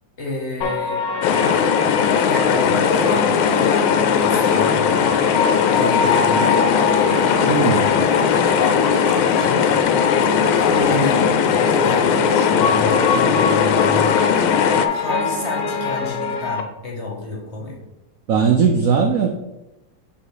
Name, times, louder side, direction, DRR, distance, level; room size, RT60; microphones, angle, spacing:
voice 1, 0.2-1.1 2.2-5.1 5.7-9.7 10.4-11.3 11.5-14.5 14.9-17.8, left 2 dB, 45° left, 0 dB, 1.1 m, -29 dB
sound 1, 0.6-16.6, left 5 dB, 65° left, 1.0 m, -25 dB
sound 2, 1.2-14.9, left 7 dB, 85° left, 1.3 m, -18 dB
voice 2, 7.5-7.9 18.3-19.4, right 6 dB, 85° right, 4 dB, 0.7 m, -18 dB
6.9 x 3.1 x 4.9 m, 0.96 s
omnidirectional pair, 2.1 m